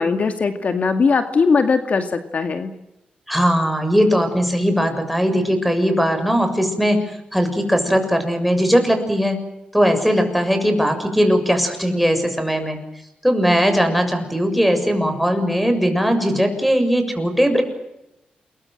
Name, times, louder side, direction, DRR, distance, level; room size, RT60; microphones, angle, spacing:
voice 1, 0.0-2.7, left 4 dB, 55° left, 7 dB, 2.2 m, -19 dB
voice 2, 3.3-7.0 7.3-9.4 9.7-12.8 13.2-17.6, equal, ahead, 5 dB, 7.0 m, -19 dB
28.5 x 23.0 x 7.7 m, 0.90 s
cardioid pair, 90°, 3 cm